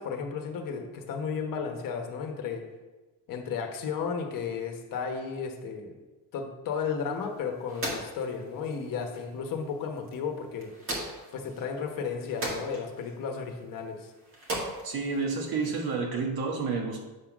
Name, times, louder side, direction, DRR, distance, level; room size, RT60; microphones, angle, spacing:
voice 1, 0.0-2.6 3.3-6.0 6.3-10.7 11.3-14.1, left 6 dB, 60° left, 3 dB, 1.2 m, -34 dB
sound 1, 7.0-16.0, right 1 dB, 35° right, 1.9 m, -40 dB
voice 2, 14.8-17.0, right 4 dB, 65° right, 1 dB, 1.5 m, -30 dB
8.2 x 3.7 x 6.1 m, 1.2 s
cardioid pair, 175°, 38 cm